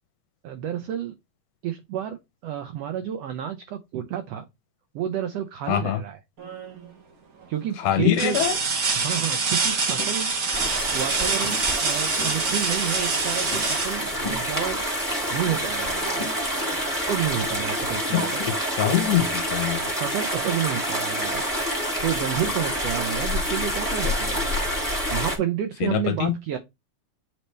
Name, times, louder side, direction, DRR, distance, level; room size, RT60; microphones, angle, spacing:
voice 1, 0.4-1.2 1.6-4.4 4.9-6.2 7.5-8.4 9.0-10.3 10.9-14.9 15.3-16.3 17.1-18.4 20.0-21.4 22.0-24.4 25.1-26.6, right 10 dB, 75° right, 1.5 m, -30 dB
voice 2, 5.7-6.0 7.8-8.6 18.1-19.9 25.8-26.4, left 11 dB, 70° left, 1.5 m, -24 dB
sound 1, 6.4-6.9 7.4-7.5 8.1-14.8 16.6-16.7 17.2-18.2 19.5-19.6, right 4 dB, 55° right, 0.9 m, -26 dB
sound 2, 10.0-10.1 11.4-11.8 12.2-12.5 13.5-13.8 14.2-14.6 15.4-15.6 15.9-16.4 17.6-17.7 18.4-18.6, left 2 dB, 25° left, 1.0 m, -37 dB
sound 3, 10.5-25.4, equal, 5° right, 2.0 m, -27 dB
8.1 x 4.3 x 3.4 m
omnidirectional pair, 3.5 m